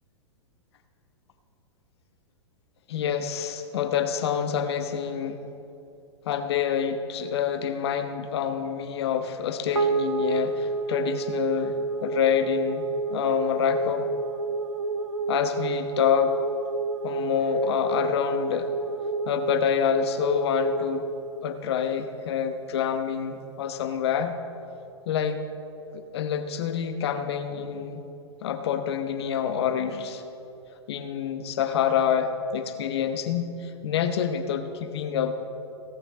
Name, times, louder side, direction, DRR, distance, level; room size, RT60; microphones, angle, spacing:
voice 1, 2.9-5.4 6.2-14.1 15.3-16.4 17.0-18.7 19.3-21.0 21.4-24.4 25.1-25.4 25.9-28.0 28.4-30.2 30.9-35.4, left 8 dB, 60° left, 8 dB, 1.0 m, -27 dB
sound 1, 9.7-22.3, right 3 dB, 90° right, 0.7 m, -30 dB
17.5 x 6.4 x 6.1 m, 2.7 s
hypercardioid pair, 110°, 15 cm